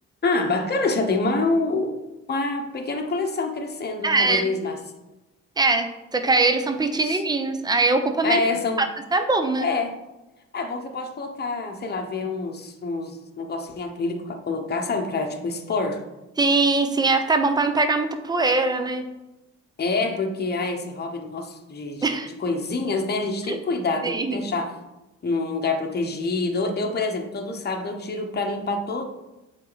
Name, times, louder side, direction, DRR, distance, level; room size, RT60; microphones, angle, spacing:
voice 1, 0.2-2.0 2.3-4.8 7.0-7.2 8.2-8.9 9.6-10.0 10.5-16.0 19.8-22.1 22.4-24.7 25.2-29.1, left 3 dB, 35° left, 3 dB, 1.0 m, -26 dB
voice 2, 4.0-4.5 5.6-8.4 8.8-8.9 9.1-9.7 16.4-19.0 22.0-22.3 23.5-23.6 24.0-24.4, right 3 dB, 15° right, 7 dB, 0.7 m, -22 dB
7.7 x 4.1 x 4.0 m, 1.0 s
cardioid pair, 90°, 30 cm